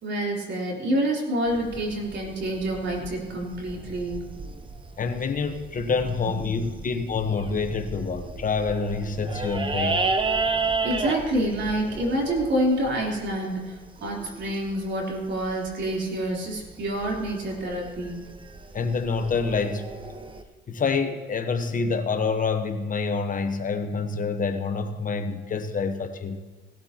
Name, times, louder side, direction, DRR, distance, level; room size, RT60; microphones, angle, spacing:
voice 1, 0.0-4.3 6.5-6.6 10.8-18.2, right 1 dB, 65° right, -2 dB, 3.7 m, -27 dB
sound 1, 1.5-20.4, right 3 dB, 25° right, 1.0 m, -33 dB
voice 2, 5.0-10.1 18.7-19.8 20.7-26.4, left 4 dB, 45° left, 7 dB, 1.1 m, -27 dB
17.5 x 12.0 x 2.9 m, 1.2 s
cardioid pair, 90°, 20 cm